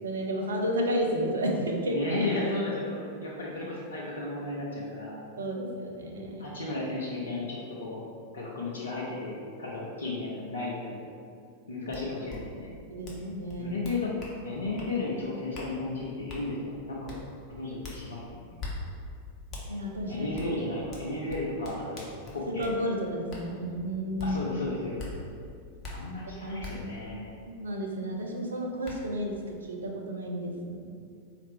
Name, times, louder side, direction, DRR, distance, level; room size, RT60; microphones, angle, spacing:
voice 1, 0.0-2.0 5.4-6.6 12.9-13.8 19.7-20.3 22.6-24.4 26.5-26.6 27.1-30.9, equal, 70° right, 0 dB, 0.5 m, -32 dB
voice 2, 1.9-5.2 6.4-8.0 8.3-11.0 11.7-12.7 13.6-14.1 14.4-17.2 17.5-18.5 20.1-22.7 24.2-25.0 25.9-27.3, left 2 dB, 70° left, -5 dB, 0.5 m, -34 dB
sound 1, 11.9-12.0 12.3-12.4 13.0-13.2 13.5-14.3 14.8-14.9 15.5-15.7 16.3-16.4 17.1-17.2 17.8-18.0 18.6-18.7 19.5-19.6 20.4-20.5 20.9-22.7 23.3-23.4 24.2-24.3 25.0-25.1 25.8-25.9 26.6-26.7 28.2-28.3 28.8-28.9, left 3 dB, 35° left, 0.8 m, -41 dB
4.2 x 2.4 x 3.4 m, 2.3 s
figure-of-eight pair, 90°, 0 cm